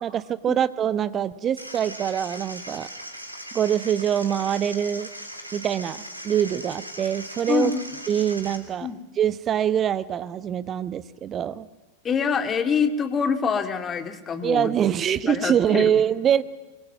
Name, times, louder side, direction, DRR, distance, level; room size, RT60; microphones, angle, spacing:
voice 1, 0.0-2.9 3.5-5.1 5.5-7.7 8.1-11.7 14.4-16.4, right 9 dB, 25° right, 16 dB, 1.0 m, -24 dB
sound 1, 1.6-8.6, equal, 85° right, 3.3 m, -39 dB
voice 2, 7.5-7.8 8.8-9.0 12.0-14.7 15.3-15.9, left 6 dB, 25° left, 9 dB, 2.3 m, -25 dB
24.0 x 24.0 x 9.4 m, 1.2 s
figure-of-eight pair, 90°, 0 cm